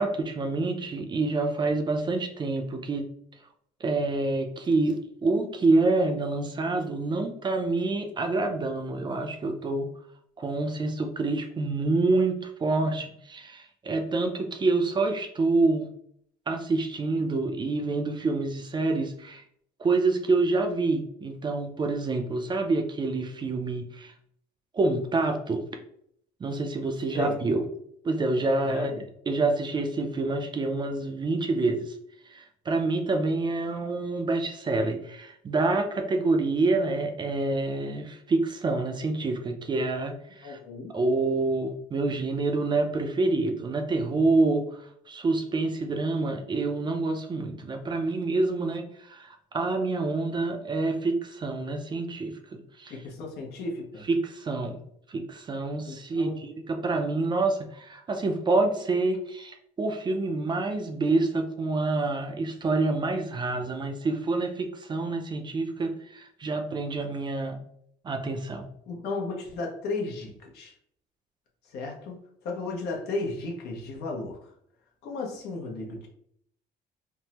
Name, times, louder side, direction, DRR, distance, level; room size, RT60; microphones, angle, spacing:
voice 1, 0.0-3.1 3.8-9.9 10.4-15.9 16.5-19.4 19.8-24.1 24.7-25.6 26.4-27.6 28.0-28.9 29.3-32.0 32.3-40.6 40.9-52.9 54.1-54.8 55.1-67.6 68.0-68.7, right 3 dB, 25° right, 5 dB, 0.4 m, -27 dB
voice 2, 28.6-29.0 40.4-40.9 52.9-54.0 55.9-56.4 68.9-70.7 71.6-74.5 75.0-76.1, left 3 dB, 75° left, 0 dB, 0.8 m, -34 dB
3.5 x 2.1 x 2.8 m, 0.69 s
cardioid pair, 110°, 17 cm